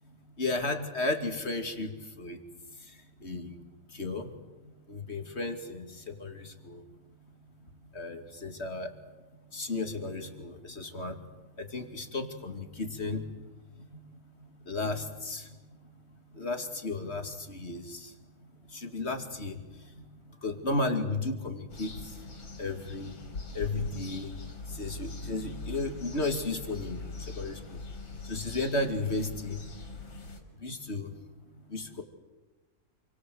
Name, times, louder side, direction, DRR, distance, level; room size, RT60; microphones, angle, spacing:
voice 1, 0.4-1.9 2.2-2.4 3.2-3.6 3.9-4.3 4.9-6.8 7.9-8.9 9.5-11.2 11.6-13.2 13.8-14.0 14.7-15.5 16.3-18.1 18.7-19.6 19.9-20.0 20.4-22.1 22.6-23.1 23.5-24.3 24.7-27.0 27.4-27.8 28.3-29.6 30.6-31.1 31.7-32.0, left 2 dB, 30° left, 5 dB, 2.6 m, -34 dB
sound 1, 21.7-30.4, left 3 dB, 70° left, 3.9 m, -42 dB
29.0 x 23.5 x 7.9 m, 1.2 s
omnidirectional pair, 2.2 m